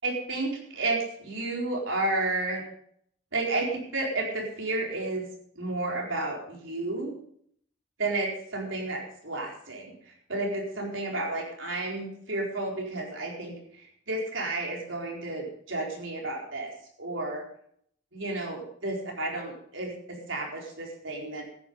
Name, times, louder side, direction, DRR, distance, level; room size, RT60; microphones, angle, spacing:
voice 1, 0.0-2.6 3.3-5.3 5.5-7.1 8.0-16.7 17.0-17.4 18.1-21.4, right 2 dB, 90° right, 0 dB, 4.3 m, -32 dB
14.0 x 10.5 x 5.4 m, 0.65 s
head